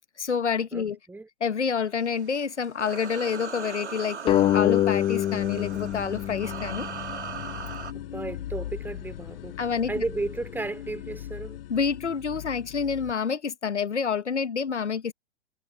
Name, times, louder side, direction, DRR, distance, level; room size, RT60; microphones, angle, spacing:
voice 1, 0.2-1.0 1.4-6.9 9.6-10.0 11.7-15.1, left 6 dB, 80° left, 1.4 m, -28 dB
voice 2, 0.7-1.3 7.9-9.6 9.9-11.6, right 2 dB, 5° right, 2.6 m, -34 dB
sound 1, 1.9-7.9, right 6 dB, 75° right, 3.2 m, -39 dB
sound 2, 4.3-7.5, left 13 dB, 15° left, 0.7 m, -25 dB
sound 3, 5.4-13.1, left 12 dB, 55° left, 1.3 m, -39 dB
figure-of-eight pair, 115°, 34 cm